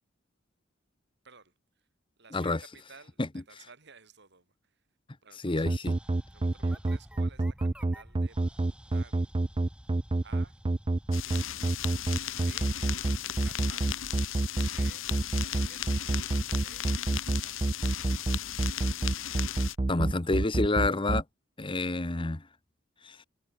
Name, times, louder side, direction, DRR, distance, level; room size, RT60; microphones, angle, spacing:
voice 1, 1.2-1.9 2.2-4.9 5.2-5.9 6.3-9.3 10.2-10.6 11.2-11.8 12.3-12.8 13.4-14.2 14.6-15.1 15.4-15.9 16.2-17.9, right 5 dB, 60° right, 5.7 m, -56 dB
voice 2, 5.4-5.9 19.9-21.2 21.6-22.5 23.0-23.2, left 2 dB, 25° left, 0.9 m, -28 dB
sound 1, 5.7-21.2, right 2 dB, 25° right, 0.5 m, -27 dB
sound 2, 5.8-14.4, equal, 5° right, 4.3 m, -53 dB
sound 3, 11.1-19.7, left 11 dB, 75° left, 1.1 m, -37 dB
head